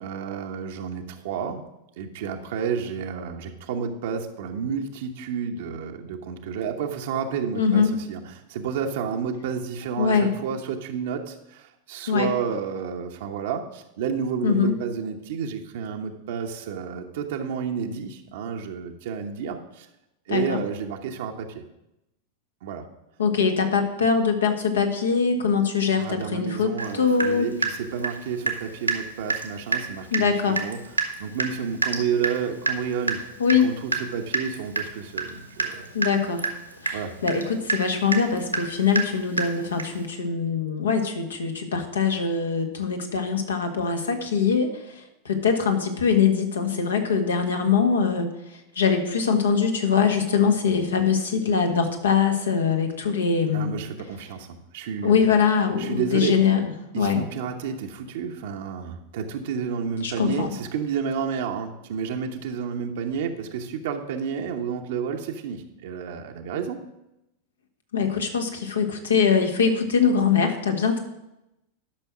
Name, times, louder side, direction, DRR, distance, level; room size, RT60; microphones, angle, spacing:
voice 1, 0.0-1.6 2.0-19.9 20.3-21.6 22.6-22.8 26.0-30.8 31.2-33.2 33.6-35.9 36.9-37.1 53.5-55.3 55.8-56.4 56.9-66.9, right 6 dB, 55° right, 3 dB, 0.9 m, -30 dB
voice 2, 7.5-7.9 10.0-10.3 12.1-12.3 14.4-14.8 20.3-20.6 23.2-27.5 30.1-30.6 33.4-33.7 35.9-36.5 36.8-53.7 55.0-57.2 60.0-60.5 67.9-71.0, left 6 dB, 70° left, 5 dB, 1.6 m, -23 dB
Water tap faucet / Drip, 26.8-26.9 27.2-28.6 28.9-29.0 29.3-29.5 29.7-29.9 30.1-30.3 30.6-40.0, right 4 dB, 85° right, 1.4 m, -28 dB
12.0 x 6.2 x 6.1 m, 0.89 s
figure-of-eight pair, 90°, 0 cm